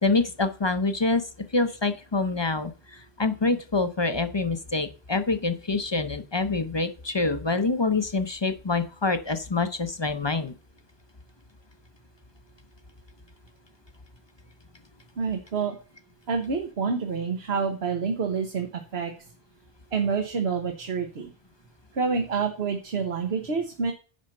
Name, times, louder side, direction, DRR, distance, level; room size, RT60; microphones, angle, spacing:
voice 1, 0.0-10.5, left 3 dB, 30° left, 10 dB, 0.7 m, -26 dB
voice 2, 15.2-15.8 16.3-19.1 19.9-21.3 21.9-23.9, right 5 dB, 85° right, 4 dB, 1.4 m, -28 dB
10.5 x 4.3 x 6.5 m, 0.37 s
omnidirectional pair, 1.0 m